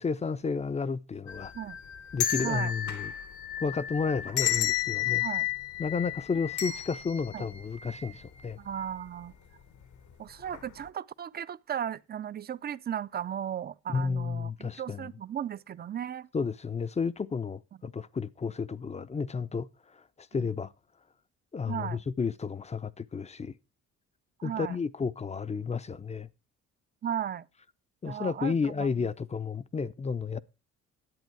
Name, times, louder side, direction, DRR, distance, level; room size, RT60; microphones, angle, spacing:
voice 1, 0.0-1.5 2.1-3.1 3.6-5.3 5.8-8.6 13.9-15.1 16.3-20.0 20.3-20.7 21.5-23.5 24.4-26.3 28.0-30.4, left 5 dB, 25° left, 0.5 m, -32 dB
sound 1, 1.3-8.4 8.8-8.9 9.8-10.1 10.5-10.7, left 11 dB, 70° left, 1.2 m, -33 dB
voice 2, 2.4-2.7 5.2-5.5 7.3-7.4 8.6-9.3 10.2-16.3 20.4-20.5 21.7-22.0 24.4-24.8 27.0-27.5 28.1-29.1, right 9 dB, 35° right, 0.4 m, -36 dB
11.0 x 8.2 x 4.6 m
cardioid pair, 90°, 30 cm